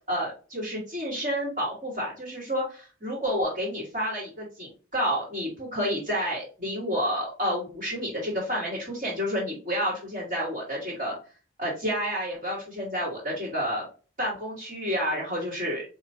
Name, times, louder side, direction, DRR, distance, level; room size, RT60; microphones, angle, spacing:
voice 1, 0.1-11.1 11.6-13.8 14.2-15.8, equal, 40° right, -8 dB, 1.7 m, -30 dB
4.4 x 2.9 x 2.7 m, 0.36 s
head